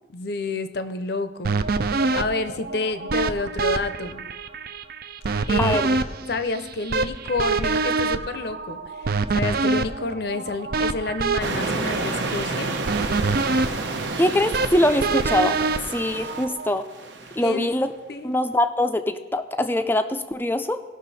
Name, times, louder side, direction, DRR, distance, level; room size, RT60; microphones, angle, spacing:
voice 1, 0.1-1.6 2.1-4.3 5.5-5.8 6.3-9.1 9.3-12.7 17.4-17.7 18.1-18.3, left 3 dB, 55° left, 10 dB, 0.6 m, -29 dB
sound 1, 1.4-16.7, right 3 dB, 50° right, 0.4 m, -26 dB
voice 2, 5.6-6.0 14.2-15.6 15.9-16.9 17.3-17.9 18.2-20.8, left 1 dB, 10° left, 8 dB, 0.4 m, -23 dB
sound 2, 11.4-17.6, right 3 dB, 65° right, 0.9 m, -30 dB
18.5 x 6.2 x 4.1 m, 1.2 s
head